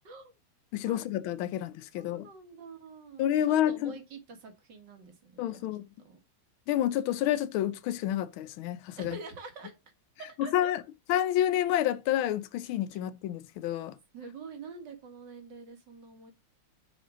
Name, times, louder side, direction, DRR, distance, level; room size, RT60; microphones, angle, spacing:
voice 1, 0.7-2.3 3.2-3.9 5.4-5.9 6.7-9.2 10.4-10.8 11.1-14.0, left 12 dB, 85° left, 1.5 m, -29 dB
voice 2, 2.0-5.7 6.0-6.2 9.0-9.7 10.2-10.7 14.1-16.3, right 4 dB, 60° right, 2.2 m, -46 dB
6.1 x 5.0 x 5.0 m
omnidirectional pair, 2.3 m